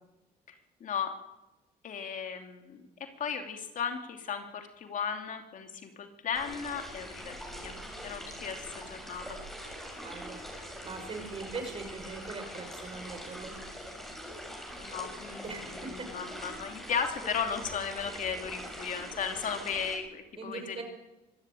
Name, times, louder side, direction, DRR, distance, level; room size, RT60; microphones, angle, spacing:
voice 1, 0.8-1.1 1.8-2.8 3.2-7.7 8.0-9.4 14.8-15.9 16.1-20.8, left 6 dB, 50° left, 5 dB, 2.8 m, -35 dB
sound 1, 6.3-20.0, equal, ahead, 7.3 m, -43 dB
voice 2, 10.0-13.6 15.4-16.1 18.6-18.9 20.3-20.8, right 4 dB, 35° right, 5 dB, 6.3 m, -41 dB
25.0 x 12.5 x 9.2 m, 1.0 s
cardioid pair, 110°, 17 cm